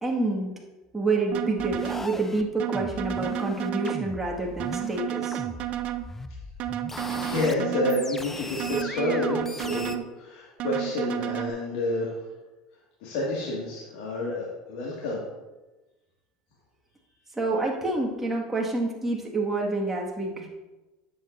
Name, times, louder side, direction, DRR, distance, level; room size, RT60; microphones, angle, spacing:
voice 1, 0.0-0.5 0.9-5.4 17.4-20.5, right 2 dB, 10° right, -2 dB, 1.8 m, -28 dB
sound 1, 1.3-2.1 2.6-4.1 4.6-6.1 6.6-8.1 8.6-10.1 10.6-11.5, right 13 dB, 55° right, 0.6 m, -31 dB
sound 2, 1.6-5.0 5.3-7.5 7.9-10.0, left 2 dB, 10° left, 0.6 m, -38 dB
voice 2, 7.1-12.2 13.0-15.2, left 2 dB, 75° left, -4 dB, 2.0 m, -29 dB
10.5 x 7.7 x 2.6 m, 1.1 s
supercardioid pair, 105°, 3 cm